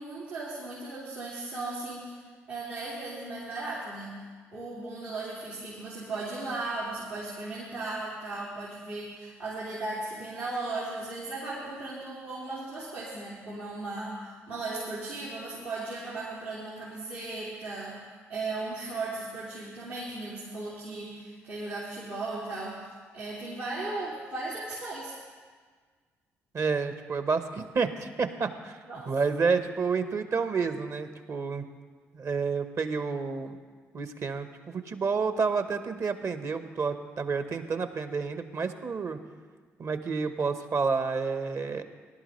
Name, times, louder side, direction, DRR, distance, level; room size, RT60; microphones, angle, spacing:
voice 1, 0.0-2.2 2.5-4.2 4.5-18.0 18.3-22.8 23.1-25.2 28.9-29.1, right 2 dB, 90° right, -12 dB, 2.4 m, -36 dB
voice 2, 26.5-28.8 29.1-31.6 32.1-33.6 33.9-39.2 39.8-41.8, right 5 dB, 50° right, 9 dB, 1.1 m, -29 dB
18.5 x 11.5 x 3.2 m, 1.5 s
hypercardioid pair, 45°, 7 cm